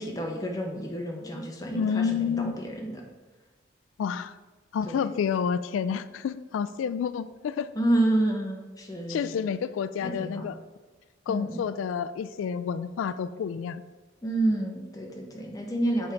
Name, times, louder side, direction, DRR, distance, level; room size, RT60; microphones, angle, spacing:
voice 1, 0.0-3.0 4.8-5.1 7.7-9.4 10.0-10.5 11.3-11.6 14.2-16.1, right 1 dB, 20° left, 1 dB, 0.9 m, -29 dB
voice 2, 1.7-2.6 4.0-4.3 4.7-7.7 9.1-10.6 11.3-13.8, left 7 dB, 85° left, 15 dB, 0.3 m, -29 dB
7.1 x 3.6 x 5.1 m, 1.2 s
head